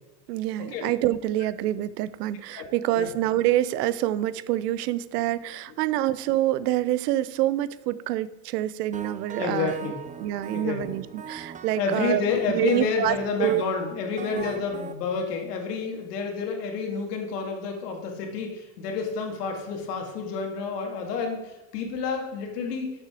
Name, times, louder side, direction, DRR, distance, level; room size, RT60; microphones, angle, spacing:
voice 1, 0.3-9.9 10.2-13.6 14.3-14.5, right 13 dB, 85° right, 17 dB, 0.6 m, -26 dB
sound 1, 8.9-14.9, right 6 dB, 15° right, 0.5 m, -40 dB
voice 2, 9.4-10.0 10.5-10.9 11.8-22.9, left 5 dB, 85° left, 2 dB, 2.1 m, -29 dB
11.0 x 7.0 x 3.7 m, 1.0 s
supercardioid pair, 95°, 46 cm